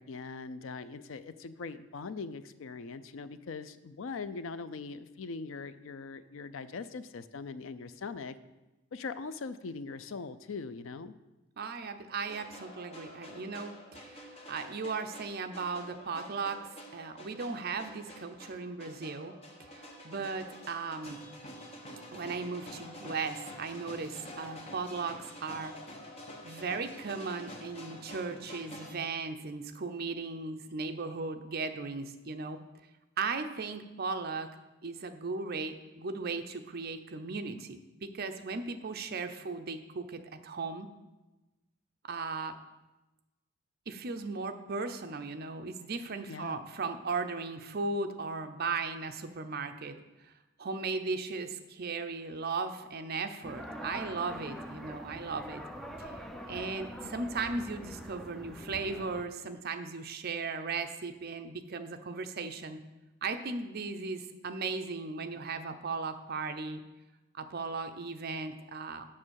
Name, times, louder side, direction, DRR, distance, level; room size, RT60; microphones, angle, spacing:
voice 1, 0.0-8.4 8.9-11.1 46.3-46.6, left 4 dB, 65° left, 13 dB, 0.5 m, -41 dB
voice 2, 11.6-16.6 16.9-19.3 19.6-21.2 22.1-25.7 26.4-32.6 33.2-34.5 34.8-40.9 42.0-42.5 43.9-50.0 50.2-50.3 50.6-55.7 56.0-56.2 56.5-62.8 63.2-66.8 67.3-69.1, right 4 dB, 50° right, 7 dB, 0.6 m, -37 dB
sound 1, 12.2-28.9, equal, 30° left, 1.1 m, -48 dB
sound 2, 53.4-59.2, equal, ahead, 0.5 m, -44 dB
7.5 x 6.4 x 6.3 m, 1.1 s
head